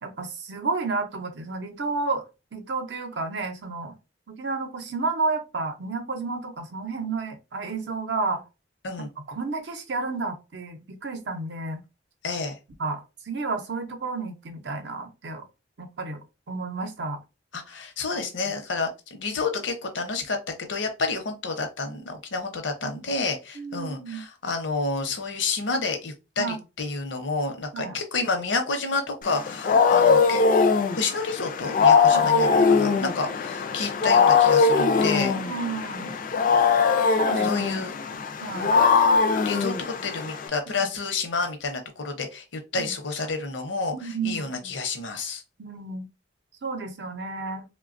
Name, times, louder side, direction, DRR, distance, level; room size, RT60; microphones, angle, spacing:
voice 1, 0.0-2.3 2.5-3.9 4.3-8.4 9.2-11.8 12.8-15.5 15.8-17.2 18.1-18.2 22.8-23.0 23.5-24.2 26.4-26.6 27.7-28.0 29.7-30.0 32.1-32.3 34.7-34.9 35.3-36.2 37.2-37.5 38.4-38.7 40.8-40.9 42.7-42.9 43.9-44.7 45.6-46.1 46.6-47.6, right 3 dB, 65° right, 0.6 m, -31 dB
voice 2, 12.2-12.6 17.5-30.4 31.0-35.3 37.4-37.9 39.4-45.4, left 3 dB, 75° left, 0.7 m, -30 dB
Wild animals, 29.3-40.5, left 5 dB, 45° left, 0.3 m, -21 dB
3.1 x 2.2 x 2.5 m
head